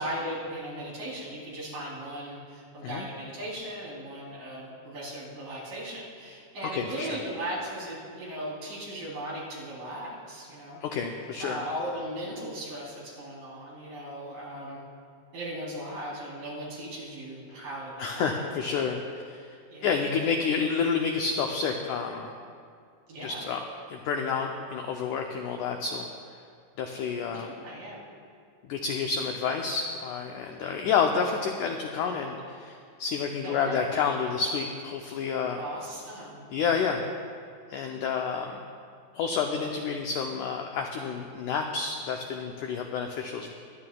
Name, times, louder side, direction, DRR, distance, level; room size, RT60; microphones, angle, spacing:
voice 1, 0.0-10.8 11.4-14.8 15.3-18.7 19.7-20.0 23.1-23.4 27.3-28.0 33.4-33.8 35.6-36.5, right 1 dB, 65° right, -7 dB, 5.0 m, -37 dB
voice 2, 6.6-7.2 10.8-11.6 18.0-19.0 19.2-19.5 19.8-22.3 23.2-23.6 23.9-26.1 26.8-27.5 28.7-35.6 36.5-37.0 37.7-38.6 39.1-43.5, left 6 dB, 85° left, 3 dB, 1.7 m, -29 dB
24.0 x 10.5 x 2.3 m, 2.2 s
omnidirectional pair, 4.2 m